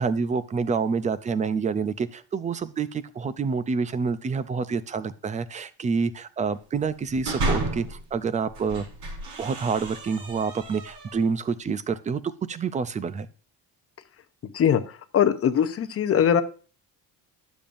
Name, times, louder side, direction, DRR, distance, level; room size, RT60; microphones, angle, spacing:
voice 1, 0.0-8.8 9.4-13.3, right 5 dB, 20° right, 15 dB, 0.3 m, -27 dB
sound 1, 6.9-8.0 8.5-11.3, right 1 dB, 90° right, 4.6 m, -32 dB
voice 2, 14.4-16.4, left 8 dB, 35° left, 9 dB, 0.6 m, -22 dB
11.5 x 7.0 x 2.5 m, 0.38 s
cardioid pair, 150°, 39 cm